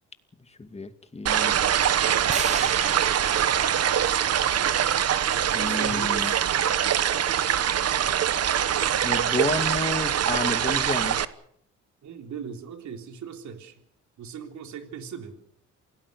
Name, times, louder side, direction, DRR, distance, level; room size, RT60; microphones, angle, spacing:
voice 1, 0.6-1.6 5.5-6.3 9.0-11.2, left 3 dB, 20° left, 8 dB, 2.4 m, -31 dB
sound 1, 1.3-11.3, right 9 dB, 55° right, 1.2 m, -23 dB
sound 2, 2.3-6.5, right 4 dB, 25° right, 1.5 m, -38 dB
voice 2, 5.6-6.5 12.0-13.8 14.2-15.4, right 7 dB, 70° right, 5 dB, 3.8 m, -39 dB
28.0 x 18.0 x 6.7 m, 0.68 s
cardioid pair, 90°, 30 cm